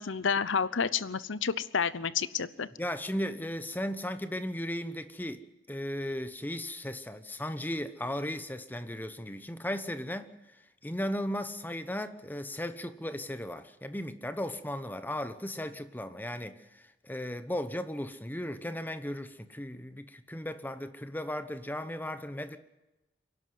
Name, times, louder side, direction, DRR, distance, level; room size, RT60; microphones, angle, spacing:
voice 1, 0.0-2.7, left 6 dB, 70° left, 0.8 m, -30 dB
voice 2, 2.8-10.3 10.8-22.6, left 1 dB, 10° left, 0.9 m, -36 dB
25.0 x 11.5 x 9.4 m
head